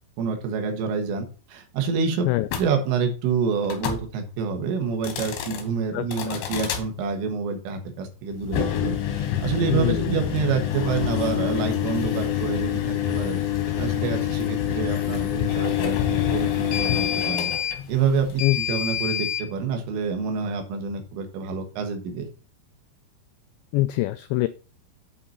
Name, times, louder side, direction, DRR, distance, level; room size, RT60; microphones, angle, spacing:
voice 1, 0.2-2.3 2.6-13.4 13.8-17.5 17.9-22.3, right 5 dB, 85° right, 5 dB, 4.0 m, -27 dB
sound 1, 2.5-2.7 3.6-4.0 4.9-5.6 6.1-6.8 8.4-19.5, left 10 dB, 75° left, 3.5 m, -26 dB
voice 2, 5.9-6.3 9.7-10.2 18.4-18.6 23.7-24.5, left 18 dB, 90° left, 12 dB, 2.5 m, -24 dB
8.6 x 5.3 x 5.5 m, 0.35 s
omnidirectional pair, 5.6 m